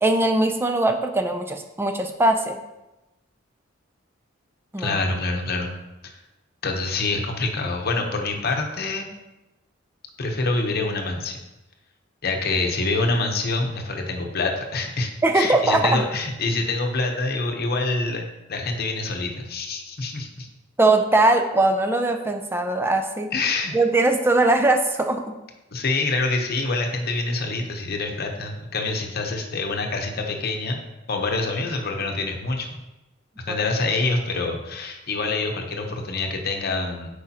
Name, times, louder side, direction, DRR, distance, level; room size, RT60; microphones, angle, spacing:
voice 1, 0.0-2.6 4.7-5.0 15.2-16.0 20.8-23.3 23.7-25.2 33.5-33.6, right 2 dB, 10° right, 4 dB, 0.4 m, -20 dB
voice 2, 4.8-5.7 6.0-6.2 6.6-9.1 10.2-11.4 12.2-15.1 15.3-20.5 23.3-23.7 25.7-30.8 31.1-32.8 33.5-37.1, left 3 dB, 50° left, 3 dB, 0.9 m, -26 dB
8.6 x 4.8 x 2.8 m, 0.99 s
head